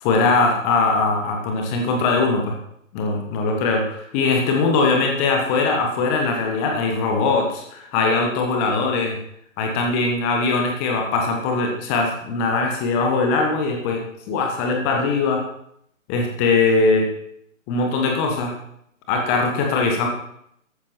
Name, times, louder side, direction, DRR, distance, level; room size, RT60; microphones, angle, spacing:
voice 1, 0.0-2.6 2.9-9.2 9.6-15.4 16.1-17.1 17.7-18.5 19.1-20.1, left 3 dB, 10° left, 2 dB, 1.4 m, -21 dB
13.5 x 13.0 x 4.4 m, 0.72 s
figure-of-eight pair, 145°, 40 cm